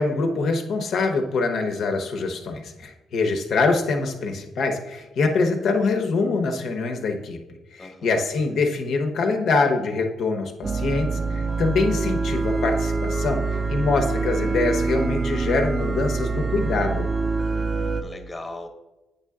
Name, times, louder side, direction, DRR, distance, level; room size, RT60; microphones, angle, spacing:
voice 1, 0.0-7.4 7.7-17.1, left 3 dB, 70° left, 5 dB, 1.1 m, -24 dB
voice 2, 7.8-8.2 17.4-18.7, left 2 dB, 25° left, 4 dB, 1.3 m, -40 dB
sound 1, 10.6-18.0, right 3 dB, 30° right, 0.6 m, -25 dB
8.6 x 5.8 x 3.7 m, 1.1 s
cardioid pair, 90°, 0 cm